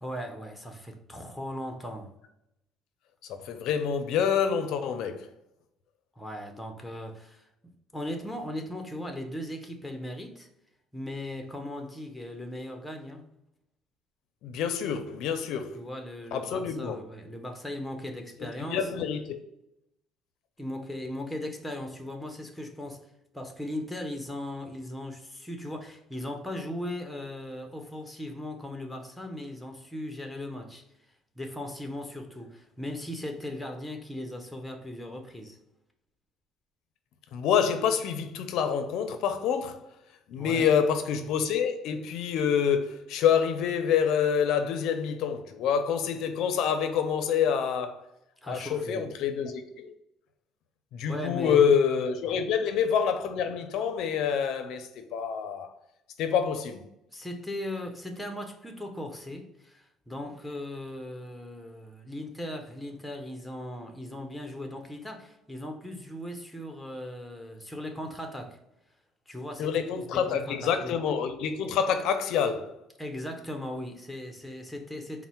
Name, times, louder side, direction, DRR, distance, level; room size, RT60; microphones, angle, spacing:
voice 1, 0.0-2.1 6.2-10.5 10.9-13.2 15.7-19.0 20.6-23.1 23.3-30.8 31.4-35.6 40.4-40.7 48.4-49.1 51.1-51.7 52.2-52.4 57.1-68.6 69.3-71.0 73.0-75.3, left 1 dB, 5° left, 0.7 m, -38 dB
voice 2, 3.3-5.3 14.4-15.8 16.3-17.0 18.7-19.4 37.3-39.8 40.3-48.0 48.5-49.9 50.9-55.7 56.2-56.8 69.6-72.7, left 7 dB, 70° left, 0.4 m, -27 dB
4.2 x 2.0 x 4.2 m
cardioid pair, 115°, 0 cm